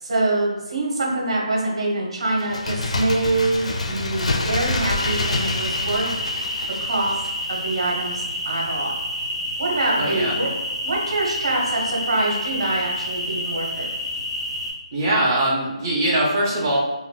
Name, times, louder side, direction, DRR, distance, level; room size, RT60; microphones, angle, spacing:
voice 1, 0.0-6.1 6.7-7.2 7.5-8.9 9.6-10.5 10.8-13.9, right 2 dB, 55° right, -3 dB, 1.2 m, -24 dB
Bird, 2.4-7.9 8.2-8.3, left 2 dB, 75° left, 0.4 m, -27 dB
sound 1, 4.9-14.7, equal, 15° left, 0.7 m, -29 dB
voice 2, 10.0-10.3 14.9-16.8, right 1 dB, 20° right, -4 dB, 0.6 m, -21 dB
3.7 x 2.2 x 2.3 m, 1.1 s
hypercardioid pair, 170°, 4 cm